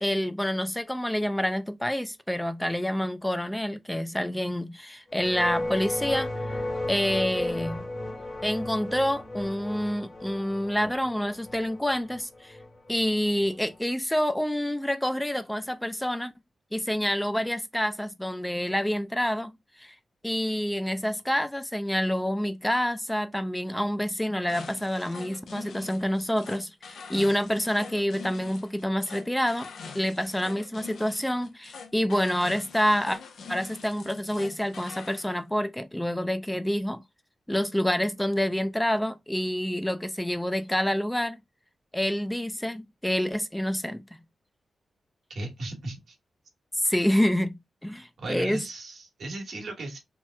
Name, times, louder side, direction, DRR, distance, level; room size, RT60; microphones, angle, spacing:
voice 1, 0.0-7.8 8.4-12.6 12.9-16.3 16.7-19.9 20.2-29.7 29.9-33.2 33.5-37.0 37.5-41.4 41.9-44.0 46.7-47.6 47.8-48.6, equal, 10° left, 0.4 m, -27 dB
sound 1, 5.1-13.8, left 1 dB, 45° left, 1.3 m, -35 dB
sound 2, 24.5-35.3, left 5 dB, 75° left, 0.5 m, -44 dB
voice 2, 45.3-46.2 48.2-50.0, right 2 dB, 70° right, 1.1 m, -36 dB
2.9 x 2.1 x 3.3 m
cardioid pair, 50°, 0 cm